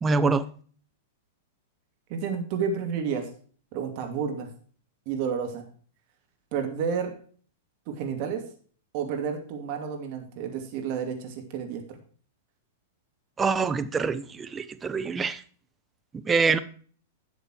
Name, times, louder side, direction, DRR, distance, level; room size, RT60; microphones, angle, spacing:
voice 1, 0.0-0.4 13.4-15.4 16.2-16.6, right 4 dB, 20° right, 11 dB, 1.0 m, -25 dB
voice 2, 2.1-3.3 3.7-4.5 5.1-5.7 6.5-7.1 7.9-8.4 8.9-12.0, right 6 dB, 50° right, 4 dB, 2.6 m, -30 dB
11.5 x 7.3 x 4.6 m, 0.43 s
hypercardioid pair, 105°, 0 cm